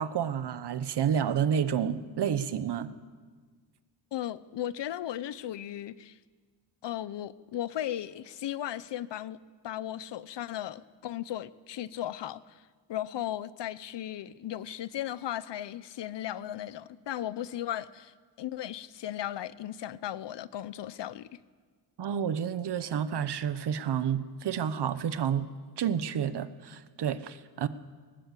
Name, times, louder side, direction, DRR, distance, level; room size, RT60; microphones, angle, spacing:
voice 1, 0.0-2.9 22.0-25.5 25.8-27.7, right 8 dB, 70° right, 12 dB, 1.1 m, -30 dB
voice 2, 4.1-6.1 6.8-9.4 9.6-12.6 12.9-21.3, left 12 dB, 80° left, 17 dB, 0.8 m, -36 dB
20.0 x 19.5 x 8.3 m, 1.5 s
wide cardioid pair, 170°, 42 cm